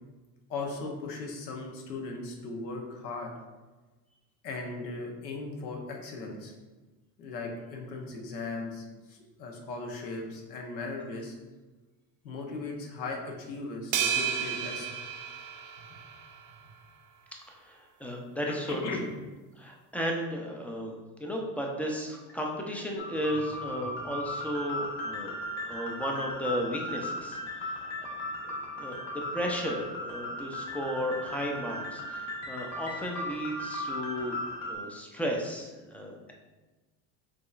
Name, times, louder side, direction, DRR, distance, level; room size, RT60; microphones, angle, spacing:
voice 1, 0.5-3.3 4.4-6.5 7.2-11.3 12.2-15.0 18.7-19.0, left 3 dB, 85° left, 1 dB, 0.9 m, -38 dB
sound 1, 13.9-16.4, right 8 dB, 50° right, 0.6 m, -32 dB
voice 2, 17.5-19.1 19.6-25.4 25.7-27.9 28.8-29.0 29.3-34.4 34.6-36.3, equal, 5° left, 0 dB, 0.3 m, -34 dB
sound 2, 23.0-34.7, left 1 dB, 70° left, 1.2 m, -37 dB
5.0 x 3.6 x 2.4 m, 1.2 s
hypercardioid pair, 75°, 50 cm